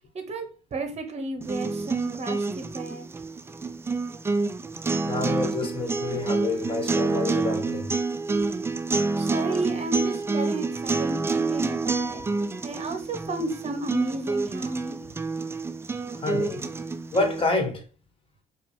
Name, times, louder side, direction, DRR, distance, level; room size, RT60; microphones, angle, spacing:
voice 1, 0.1-0.4 0.7-3.1 9.2-12.3 12.6-15.2, right 2 dB, 30° right, 1.0 m, -32 dB
sound 1, 1.4-17.4, right 3 dB, 10° right, 0.3 m, -28 dB
voice 2, 5.0-7.9 16.2-16.6 17.1-17.8, left 3 dB, 25° left, 1.2 m, -28 dB
4.6 x 2.0 x 3.4 m
hypercardioid pair, 65°, 21 cm